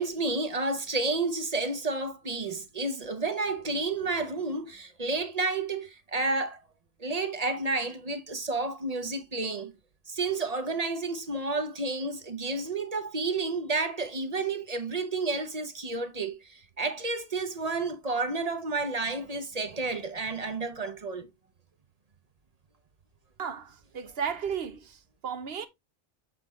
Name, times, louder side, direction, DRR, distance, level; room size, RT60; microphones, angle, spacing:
voice 1, 0.0-6.6 7.0-9.7 10.1-21.3, right 3 dB, 40° right, 0.9 m, -31 dB
voice 2, 23.4-25.7, right 7 dB, 75° right, 1.1 m, -34 dB
7.8 x 5.1 x 3.1 m
omnidirectional pair, 1.0 m